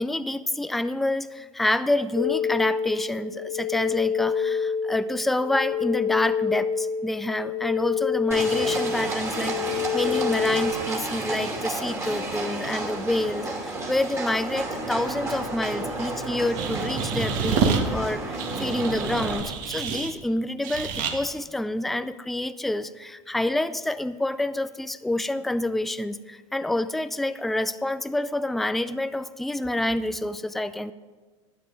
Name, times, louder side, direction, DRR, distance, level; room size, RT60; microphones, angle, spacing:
voice 1, 0.0-30.9, left 1 dB, ahead, 14 dB, 0.4 m, -28 dB
sound 1, 2.1-10.7, left 7 dB, 65° left, 1.2 m, -27 dB
Livestock farm animals working animals, 8.3-19.4, right 2 dB, 15° right, 2.5 m, -31 dB
sound 2, 16.6-17.8 18.4-20.1 20.6-21.1, right 6 dB, 50° right, 1.6 m, -27 dB
12.0 x 9.3 x 5.0 m, 1.3 s
hypercardioid pair, 90°, 17 cm